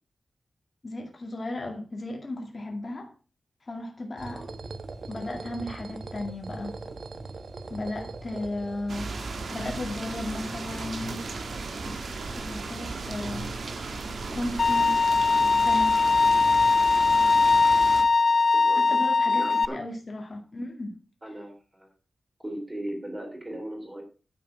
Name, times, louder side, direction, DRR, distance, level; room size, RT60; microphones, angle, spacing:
voice 1, 0.8-3.1 3.6-4.4 5.1-6.8 7.7-9.1 9.5-11.3 11.9-13.5 14.3-15.0 15.6-16.0 18.7-20.9, left 1 dB, 35° left, 2 dB, 2.1 m, -35 dB
sound 1, 4.2-9.4, right 3 dB, 55° right, 1.3 m, -40 dB
sound 2, 8.9-18.0, right 3 dB, 75° right, 2.0 m, -35 dB
Bowed string instrument, 14.6-19.6, left 4 dB, 50° left, 0.4 m, -21 dB
voice 2, 18.5-19.0 19.4-19.8 21.2-21.9 22.4-24.0, right 1 dB, 15° right, 2 dB, 3.3 m, -38 dB
9.9 x 7.5 x 5.9 m, 0.36 s
wide cardioid pair, 160°, 0 cm